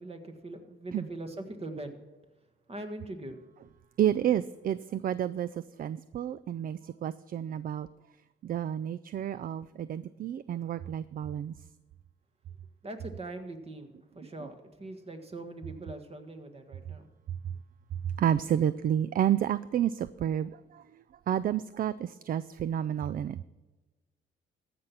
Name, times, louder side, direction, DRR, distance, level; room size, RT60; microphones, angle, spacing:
voice 1, 0.0-2.0 2.7-3.4 12.8-17.1, right 2 dB, 30° right, 7 dB, 1.6 m, -42 dB
voice 2, 4.0-7.9 8.4-11.6 14.4-14.5 18.2-23.4, right 10 dB, 45° right, 16 dB, 0.4 m, -30 dB
14.5 x 6.0 x 7.0 m, 1.2 s
cardioid pair, 90°, 20 cm